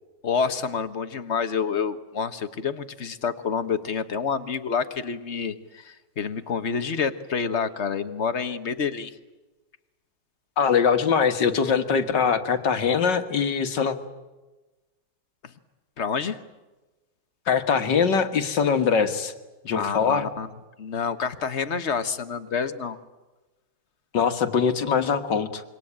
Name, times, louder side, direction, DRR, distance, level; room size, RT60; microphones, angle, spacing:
voice 1, 0.2-9.2 15.4-15.5 16.0-16.4 19.7-20.5 20.8-23.0, left 6 dB, 40° left, 10 dB, 1.4 m, -28 dB
voice 2, 10.6-14.0 17.5-19.3 19.6-20.3 24.1-25.6, left 6 dB, 70° left, 8 dB, 2.2 m, -22 dB
26.5 x 23.5 x 8.7 m, 1.1 s
omnidirectional pair, 2.0 m